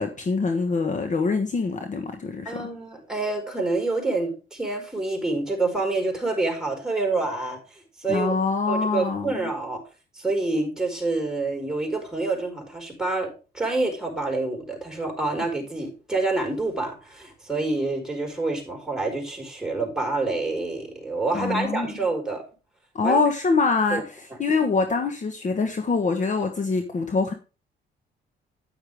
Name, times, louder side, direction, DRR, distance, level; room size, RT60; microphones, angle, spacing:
voice 1, 0.0-2.5 8.1-9.5 21.3-21.9 22.9-27.3, left 4 dB, 40° left, 1.2 m, -24 dB
voice 2, 2.4-8.3 8.7-9.8 10.1-13.3 13.5-22.4 23.0-23.2 23.9-24.0, right 3 dB, 5° right, 4.8 m, -27 dB
9.4 x 9.0 x 3.5 m
cardioid pair, 90°, 20 cm